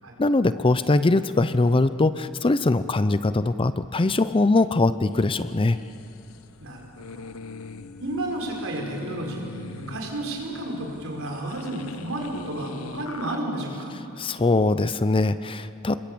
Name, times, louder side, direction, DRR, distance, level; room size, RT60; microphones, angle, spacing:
voice 1, 0.2-5.8 14.2-16.0, left 2 dB, 25° left, 14 dB, 0.5 m, -22 dB
sound 1, 5.1-13.4, left 4 dB, 80° left, 0.7 m, -42 dB
voice 2, 6.6-7.4 8.0-13.9, right 1 dB, 70° right, 0 dB, 5.3 m, -32 dB
27.5 x 22.0 x 8.6 m, 2.8 s
head